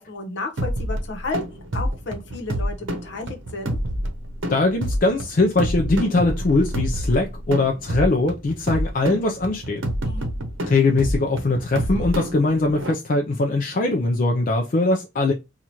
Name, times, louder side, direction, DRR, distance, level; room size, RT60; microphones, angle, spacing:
voice 1, 0.0-3.8 10.1-10.3, left 3 dB, 65° left, 1.0 m, -32 dB
sound 1, 0.6-12.9, equal, 85° right, 0.7 m, -28 dB
voice 2, 4.5-9.8 10.6-15.3, left 2 dB, 45° left, 0.4 m, -21 dB
2.9 x 2.4 x 4.2 m
head